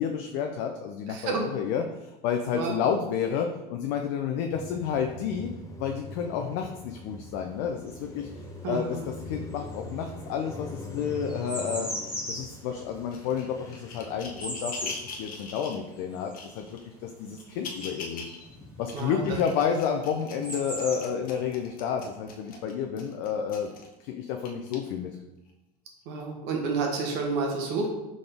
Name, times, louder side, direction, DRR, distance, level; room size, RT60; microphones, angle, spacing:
voice 1, 0.0-5.5 5.8-8.3 8.7-8.9 9.3-11.9 12.3-18.2 18.8-23.7 24.0-25.1, left 7 dB, 60° left, 4 dB, 0.5 m, -30 dB
voice 2, 1.1-1.5 2.5-2.8 8.6-9.1 18.9-19.4 26.0-27.9, right 4 dB, 60° right, 1 dB, 1.2 m, -30 dB
Car passing by, 4.5-17.0 17.3-19.8, left 2 dB, 15° left, 0.6 m, -44 dB
sound 1, 7.9-9.0 9.3-18.6 19.7-19.8 20.0-21.6, equal, 5° right, 1.3 m, -38 dB
sound 2, 13.1-15.8 16.3-16.9 17.4-18.4 18.8-23.9 24.5-24.7 25.5-25.6, left 4 dB, 45° left, 1.0 m, -43 dB
4.0 x 3.7 x 3.4 m, 0.99 s
hypercardioid pair, 100°, 21 cm